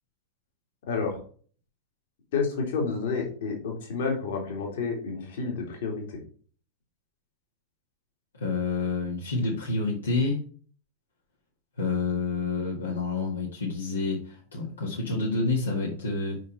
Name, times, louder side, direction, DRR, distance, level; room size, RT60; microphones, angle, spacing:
voice 1, 0.9-1.2 2.3-6.0, left 4 dB, 55° left, 1 dB, 2.2 m, -30 dB
voice 2, 8.3-10.4 11.8-16.4, left 3 dB, 75° left, -3 dB, 1.7 m, -28 dB
5.4 x 5.1 x 4.0 m, 0.43 s
figure-of-eight pair, 90°, 0 cm